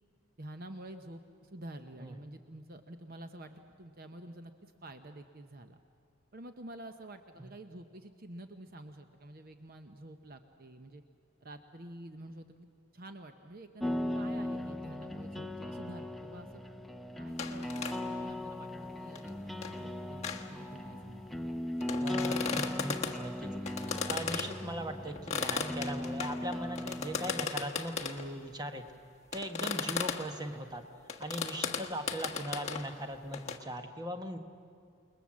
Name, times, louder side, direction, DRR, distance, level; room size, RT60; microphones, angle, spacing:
voice 1, 0.4-5.8 6.3-11.0 11.4-12.7 12.9-16.6 17.1-18.7 19.0-21.3, right 1 dB, 45° right, 7 dB, 0.9 m, -49 dB
sound 1, 13.8-27.5, left 1 dB, ahead, 0.6 m, -38 dB
sound 2, 17.4-18.0 18.3-18.4 18.8-18.9 19.1-19.8 20.2-20.5 21.0-21.1 21.8-23.2 23.7-24.6 25.1-28.3 29.3-30.3 31.1-32.9 33.3-33.6, left 6 dB, 30° left, 1.3 m, -36 dB
voice 2, 22.0-23.5 23.8-28.8 29.3-30.8 31.2-34.4, equal, 20° right, 6 dB, 1.2 m, -39 dB
29.0 x 20.5 x 7.5 m, 2.4 s
head